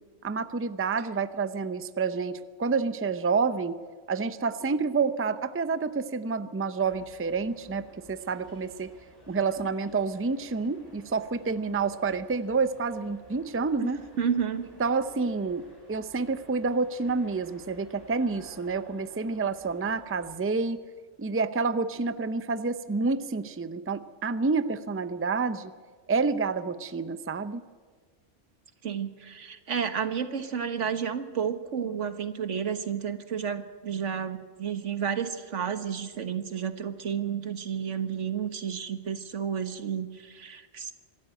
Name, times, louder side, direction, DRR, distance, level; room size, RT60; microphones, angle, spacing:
voice 1, 0.2-3.8 4.1-8.9 9.3-14.0 14.8-15.6 15.9-20.8 21.2-25.7 26.1-27.6, right 4 dB, 15° right, 12 dB, 0.5 m, -28 dB
sound 1, 6.8-20.4, equal, 20° left, 7.9 m, -55 dB
voice 2, 14.1-14.7 28.8-40.9, right 7 dB, 90° right, 9 dB, 1.6 m, -31 dB
25.5 x 13.0 x 9.1 m, 1.5 s
omnidirectional pair, 1.2 m